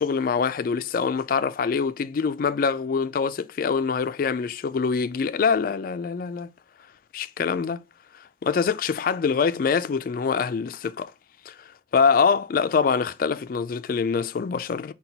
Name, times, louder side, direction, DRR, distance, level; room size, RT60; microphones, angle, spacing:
voice 1, 0.0-6.5 7.1-7.8 8.1-11.1 11.5-14.9, left 5 dB, 50° left, 0.3 m, -24 dB
5.8 x 2.3 x 3.9 m
head